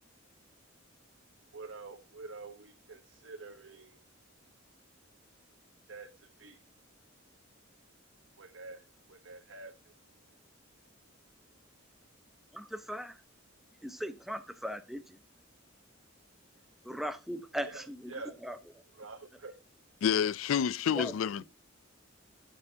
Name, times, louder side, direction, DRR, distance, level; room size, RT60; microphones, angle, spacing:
voice 1, 1.5-4.0 5.9-6.6 8.4-10.0 17.6-18.3 18.9-19.5, right 3 dB, 80° right, 1.0 m, -47 dB
voice 2, 12.5-13.2 13.8-15.0 16.8-18.0 18.4-18.6 20.9-21.1, equal, ahead, 0.8 m, -38 dB
voice 3, 20.0-21.4, left 8 dB, 85° left, 0.4 m, -28 dB
13.5 x 6.8 x 2.7 m
head